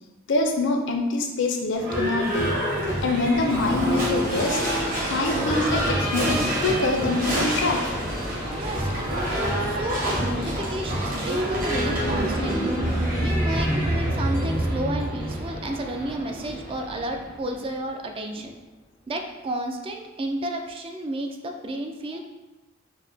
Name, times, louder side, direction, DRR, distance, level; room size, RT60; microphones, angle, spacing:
voice 1, 0.3-2.6 3.0-4.6 5.1-7.8, left 2 dB, 65° left, 3 dB, 0.5 m, -25 dB
Livestock farm animals working animals / Bell, 1.7-17.6, equal, 45° right, 1.3 m, -28 dB
voice 2, 8.5-12.7 13.2-18.6 19.1-22.2, right 1 dB, 25° right, 4 dB, 0.3 m, -32 dB
sound 1, 11.7-16.0, right 1 dB, 70° right, 1.0 m, -27 dB
4.6 x 2.1 x 3.3 m, 1.1 s
head